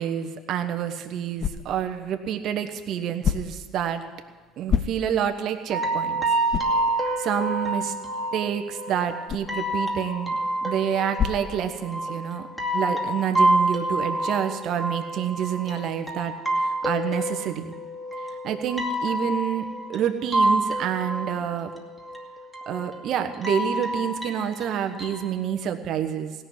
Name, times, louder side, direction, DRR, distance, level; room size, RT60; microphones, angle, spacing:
voice 1, 0.0-4.0 4.6-6.2 7.2-7.9 8.3-12.5 12.7-17.7 18.3-21.7 22.7-26.3, right 9 dB, 60° right, 6 dB, 1.2 m, -28 dB
sound 1, 0.5-12.3, left 8 dB, 40° left, 0.7 m, -34 dB
sound 2, 5.7-25.3, right 1 dB, ahead, 2.3 m, -28 dB
17.0 x 6.7 x 9.4 m, 1.3 s
hypercardioid pair, 75°, 0 cm